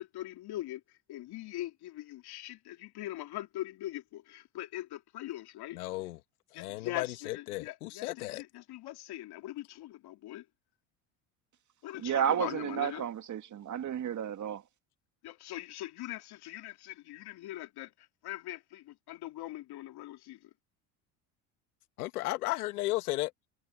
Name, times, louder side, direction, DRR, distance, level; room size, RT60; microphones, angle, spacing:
voice 1, 0.0-5.8 6.5-10.4 11.8-13.1 15.2-20.5, left 15 dB, 60° left, 3.1 m, -42 dB
voice 2, 5.7-6.2 6.5-8.4 11.9-12.0 22.0-23.3, left 18 dB, 90° left, 1.9 m, -34 dB
voice 3, 12.0-14.6, right 9 dB, 40° right, 2.3 m, -32 dB
supercardioid pair, 85°, 44 cm